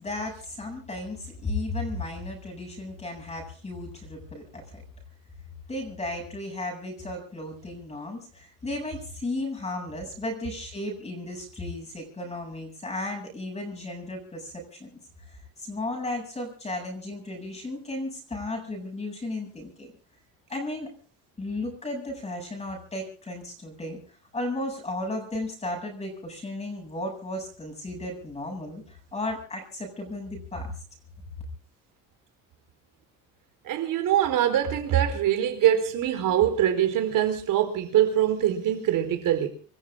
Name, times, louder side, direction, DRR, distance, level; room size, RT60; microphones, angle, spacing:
voice 1, 0.0-4.8 5.7-14.9 15.3-19.9 20.5-20.9 21.4-24.0 24.3-30.7, left 2 dB, 20° left, 7.7 m, -34 dB
voice 2, 33.6-39.5, right 11 dB, 65° right, 4.4 m, -23 dB
27.0 x 14.5 x 3.8 m
cardioid pair, 150°, 35 cm